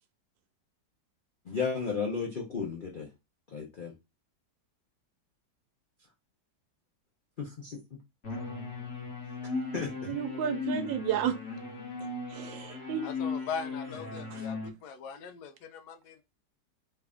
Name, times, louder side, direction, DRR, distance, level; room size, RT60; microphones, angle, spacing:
voice 1, 1.5-3.1 3.5-3.9 7.4-7.8 9.7-10.2, left 5 dB, 90° left, 0.4 m, -34 dB
sound 1, 8.2-14.7, left 4 dB, 50° left, 1.2 m, -37 dB
voice 2, 10.1-11.4 12.3-13.1, right 8 dB, 90° right, 1.3 m, -32 dB
voice 3, 13.0-16.2, left 6 dB, 70° left, 1.1 m, -40 dB
3.3 x 2.5 x 3.4 m
omnidirectional pair, 1.9 m